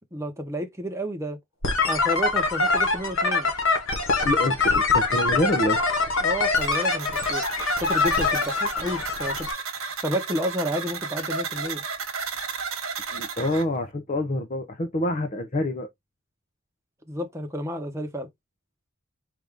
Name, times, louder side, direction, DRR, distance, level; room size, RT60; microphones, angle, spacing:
voice 1, 0.1-1.4 1.9-3.5 6.2-7.4 7.8-9.5 10.0-11.8 17.1-18.3, equal, 15° right, 0.9 m, -30 dB
sound 1, 1.6-9.5, left 3 dB, 75° left, 1.4 m, -24 dB
voice 2, 4.2-5.8 13.1-15.9, left 1 dB, 35° left, 0.7 m, -26 dB
sound 2, 6.6-13.6, right 5 dB, 85° right, 1.2 m, -33 dB
4.7 x 2.6 x 3.5 m
head